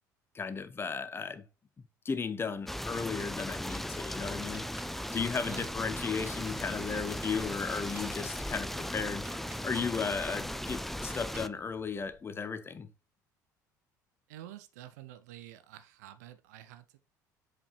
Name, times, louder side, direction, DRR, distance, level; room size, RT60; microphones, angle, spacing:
voice 1, 0.3-1.4 1.8-4.6 5.1-12.9, left 5 dB, 25° left, 0.8 m, -35 dB
sound 1, 2.6-12.2, right 3 dB, 20° right, 3.1 m, -57 dB
sound 2, 2.7-11.5, left 1 dB, ahead, 0.4 m, -37 dB
sound 3, 5.7-9.5, left 7 dB, 75° left, 1.0 m, -57 dB
voice 2, 14.3-17.0, right 13 dB, 65° right, 0.6 m, -49 dB
7.4 x 5.0 x 3.2 m
figure-of-eight pair, 60°, 10 cm